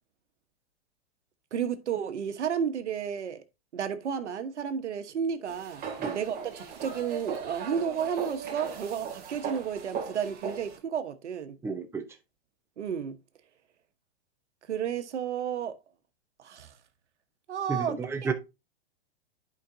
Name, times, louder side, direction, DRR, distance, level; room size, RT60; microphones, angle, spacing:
voice 1, 1.5-3.4 3.7-11.6 12.8-13.2 14.7-15.7 16.4-16.7 17.5-18.3, right 7 dB, 85° right, 1.2 m, -32 dB
sound 1, 5.5-10.8, right 6 dB, 30° right, 2.4 m, -38 dB
voice 2, 11.6-12.0 17.7-18.3, right 5 dB, 5° right, 0.9 m, -31 dB
11.0 x 5.2 x 2.7 m
hypercardioid pair, 130°, 34 cm